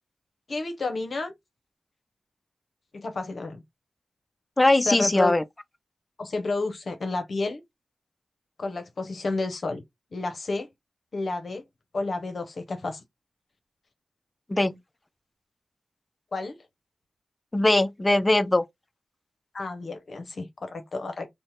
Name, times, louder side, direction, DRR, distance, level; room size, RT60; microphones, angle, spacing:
voice 1, 0.5-1.3 2.9-3.6 4.9-5.3 6.2-7.6 8.6-9.8 10.1-10.7 11.1-11.6 11.9-13.0 16.3-16.6 19.5-21.3, left 3 dB, 65° left, 0.7 m, -31 dB
voice 2, 4.6-5.4 14.5-14.8 17.5-18.6, left 2 dB, 25° left, 0.4 m, -21 dB
2.7 x 2.1 x 3.0 m
cardioid pair, 45°, 0 cm